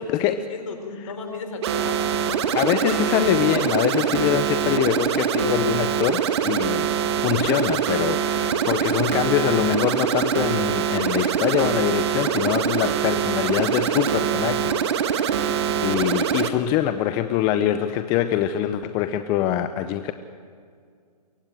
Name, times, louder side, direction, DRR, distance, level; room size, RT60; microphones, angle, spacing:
voice 1, 0.0-2.0 15.4-15.6, left 3 dB, 50° left, 5 dB, 4.8 m, -34 dB
sound 1, 1.6-16.5, right 8 dB, 40° right, 1.4 m, -23 dB
voice 2, 2.5-6.9 7.2-20.1, left 11 dB, 20° left, 10 dB, 0.6 m, -24 dB
23.0 x 17.5 x 9.1 m, 2.1 s
hypercardioid pair, 140°, 21 cm